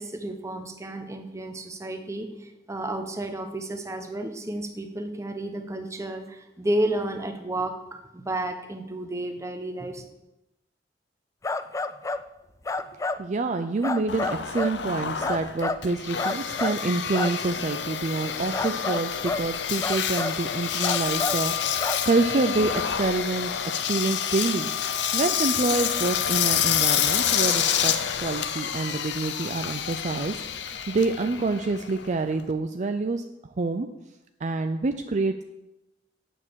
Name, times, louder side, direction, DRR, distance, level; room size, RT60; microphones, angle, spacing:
voice 1, 0.0-10.1, right 1 dB, 15° right, 6 dB, 1.0 m, -32 dB
sound 1, 11.4-12.2 12.6-13.2 13.8-14.8 15.2-15.8 16.2-16.8 17.1-17.3 18.5-19.5 19.8-20.4 20.8-21.4 21.8-22.0, left 3 dB, 20° left, 0.4 m, -29 dB
voice 2, 13.2-23.5 23.9-27.9 28.2-33.2 33.6-33.9 34.4-35.4, right 3 dB, 45° right, 7 dB, 0.5 m, -27 dB
Engine, 14.1-32.5, left 9 dB, 75° left, 0.7 m, -28 dB
8.9 x 7.5 x 6.3 m, 0.94 s
head